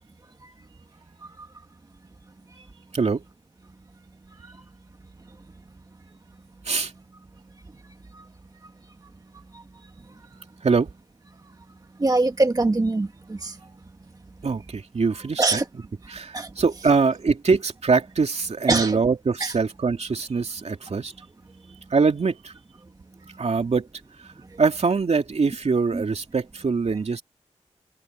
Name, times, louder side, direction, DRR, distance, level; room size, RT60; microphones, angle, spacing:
voice 1, 10.6-10.9 14.4-15.6 16.1-21.1 21.9-22.5 23.4-23.9 24.2-24.3 24.6-27.2, right 4 dB, 65° right, 2.5 m, -23 dB
voice 2, 12.0-13.6 15.4-15.6 16.3-16.5 18.7-19.0 19.4-19.5 25.9-26.0, right 2 dB, 30° right, 1.1 m, -22 dB
cardioid pair, 65°, 12 cm